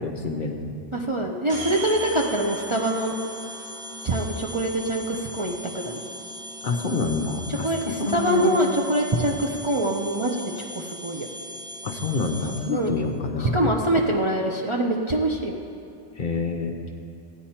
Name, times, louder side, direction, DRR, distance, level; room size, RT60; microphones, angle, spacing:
voice 1, 0.0-0.7 6.6-8.6 11.8-13.6 16.2-16.8, left 3 dB, 50° left, 3 dB, 0.8 m, -27 dB
voice 2, 0.9-3.1 4.0-6.0 7.5-11.3 12.7-12.9 13.4-15.6, right 1 dB, 30° right, -2 dB, 0.6 m, -24 dB
sound 1, 1.5-12.9, equal, 65° right, 2.6 m, -38 dB
15.0 x 9.1 x 4.3 m, 2.5 s
omnidirectional pair, 1.3 m